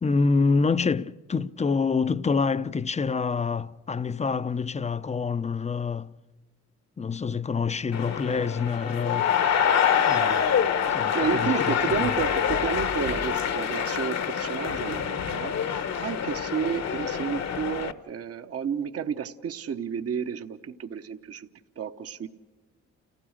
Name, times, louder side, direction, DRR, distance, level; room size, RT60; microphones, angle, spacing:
voice 1, 0.0-6.1 7.0-9.3 10.1-10.5 10.9-11.2 11.4-11.5 12.0-12.1, left 4 dB, 20° left, 0.6 m, -26 dB
sound 1, 7.9-17.9, left 8 dB, 60° left, 1.2 m, -26 dB
voice 2, 11.1-15.6 16.0-21.5 21.8-22.3, right 7 dB, 50° right, 1.0 m, -31 dB
29.5 x 16.0 x 6.5 m
cardioid pair, 90°, 30 cm